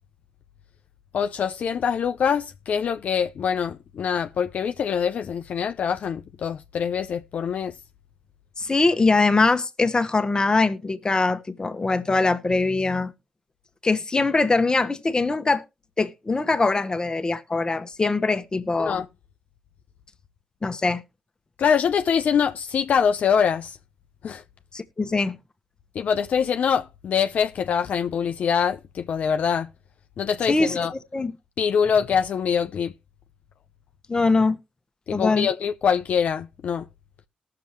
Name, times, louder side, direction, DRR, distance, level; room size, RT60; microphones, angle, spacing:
voice 1, 1.1-7.7 18.8-19.0 21.6-23.8 24.2-24.4 25.9-29.7 30.2-30.9 31.6-32.9 35.1-36.8, left 7 dB, 65° left, 0.6 m, -24 dB
voice 2, 8.6-13.1 13.8-15.6 16.0-19.0 20.6-21.0 24.7-25.4 30.5-30.8 31.1-31.4 34.1-34.6 35.1-35.5, left 3 dB, 30° left, 1.1 m, -22 dB
19.0 x 6.9 x 3.0 m
supercardioid pair, 55°, 3 cm